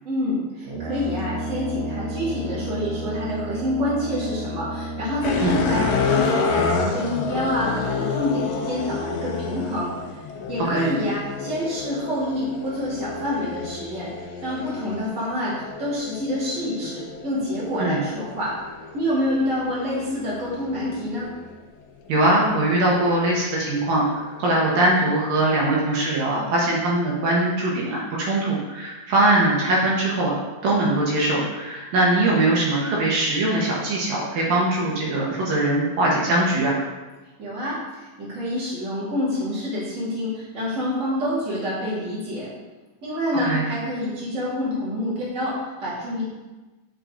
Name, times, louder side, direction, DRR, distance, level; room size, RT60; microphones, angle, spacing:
voice 1, 0.0-9.9 10.5-18.5 18.9-21.3 37.4-42.5 43.0-46.3, left 1 dB, 20° right, -8 dB, 2.9 m, -27 dB
Brass instrument, 0.6-6.4, right 1 dB, 55° right, 1.7 m, -32 dB
sound 1, 5.2-21.5 22.2-24.7, left 5 dB, 70° left, 1.8 m, -30 dB
voice 2, 22.1-30.4 30.6-36.8 43.4-43.6, right 1 dB, 75° right, -4 dB, 3.1 m, -21 dB
11.0 x 5.1 x 4.0 m, 1.2 s
omnidirectional pair, 4.1 m